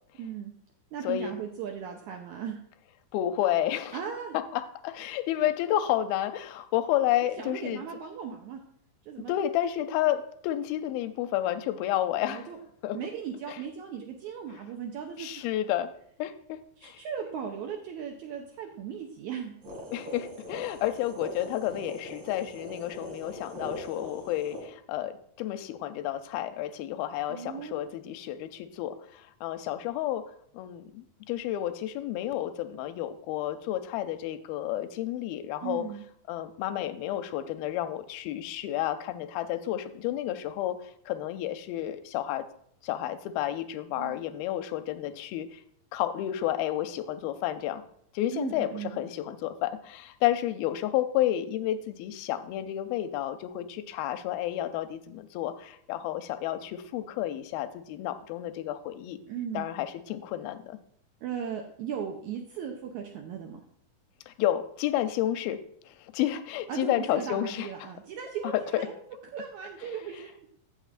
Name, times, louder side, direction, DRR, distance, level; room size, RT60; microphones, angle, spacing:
voice 1, 0.2-0.5 0.9-2.6 3.9-4.4 7.4-8.6 9.1-9.3 12.2-12.6 12.9-15.5 16.8-19.6 27.3-27.8 35.6-36.0 44.0-44.2 48.3-49.0 59.3-59.7 61.2-63.6 66.7-68.9 69.3-70.3, right 7 dB, 80° right, 2 dB, 1.7 m, -37 dB
voice 2, 3.1-4.0 4.3-7.8 9.3-12.5 12.8-13.0 13.5-13.6 15.2-15.9 16.2-17.0 19.9-30.2 30.5-35.9 36.3-40.8 41.1-42.5 42.8-45.6 45.9-47.8 48.1-59.2 59.5-60.8 64.3-67.7 68.4-68.8, left 12 dB, 90° left, 10 dB, 2.4 m, -31 dB
sound 1, 19.6-24.6, left 1 dB, 45° right, 3.1 m, -41 dB
16.0 x 5.9 x 2.5 m, 0.67 s
omnidirectional pair, 4.2 m